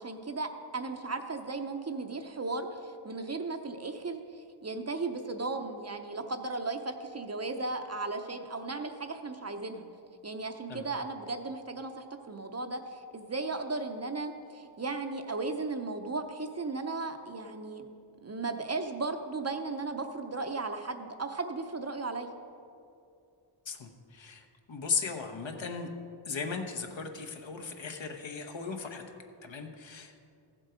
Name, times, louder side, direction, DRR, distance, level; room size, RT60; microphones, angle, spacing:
voice 1, 0.0-9.9 10.2-17.9 18.2-22.3, right 3 dB, 30° right, 6 dB, 0.7 m, -36 dB
voice 2, 23.7-25.9 26.2-29.0 29.4-30.2, left 5 dB, 60° left, 4 dB, 1.2 m, -37 dB
14.5 x 7.4 x 5.0 m, 2.5 s
wide cardioid pair, 100°, 50 cm